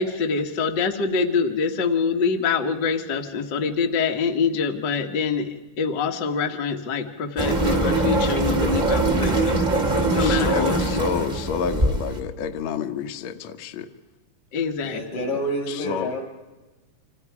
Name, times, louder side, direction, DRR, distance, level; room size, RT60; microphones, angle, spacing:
voice 1, 0.0-11.0 14.5-15.0, left 5 dB, 45° left, 3 dB, 1.7 m, -25 dB
sound 1, 7.4-12.2, right 2 dB, 35° right, 0.7 m, -22 dB
voice 2, 10.2-13.9 15.7-16.1, left 7 dB, 65° left, 6 dB, 2.0 m, -29 dB
voice 3, 14.8-16.2, equal, 85° left, 1 dB, 7.4 m, -28 dB
28.5 x 26.0 x 4.8 m, 1.2 s
omnidirectional pair, 3.7 m